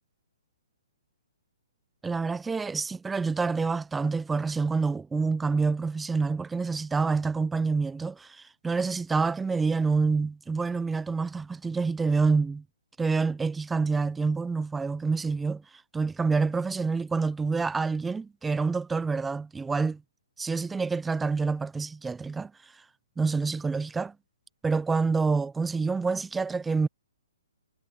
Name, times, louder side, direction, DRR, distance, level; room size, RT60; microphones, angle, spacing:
voice 1, 2.0-12.6 13.0-15.6 15.9-20.0 20.4-22.5 23.2-24.1 24.6-26.9, right 4 dB, 5° right, 0.7 m, -27 dB
hypercardioid pair, 150°, 0 cm